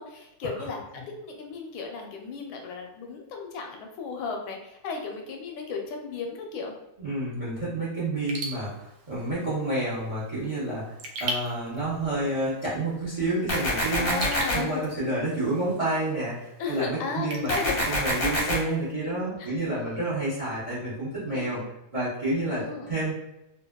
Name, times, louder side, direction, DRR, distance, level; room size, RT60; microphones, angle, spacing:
voice 1, 0.0-6.7 14.0-14.9 16.6-17.8 19.4-19.5 21.3-21.7 22.5-23.0, left 4 dB, 80° left, 2 dB, 1.3 m, -35 dB
voice 2, 7.0-10.9 11.2-14.2 14.5-17.5 17.8-21.6 21.9-23.1, right 2 dB, 45° right, -8 dB, 0.4 m, -29 dB
Raindrop / Drip, 8.2-18.9, right 2 dB, 80° right, 1.3 m, -41 dB
sound 1, 13.5-14.5 17.5-18.5, equal, 45° left, 0.7 m, -26 dB
3.3 x 2.4 x 2.2 m, 0.90 s
omnidirectional pair, 2.2 m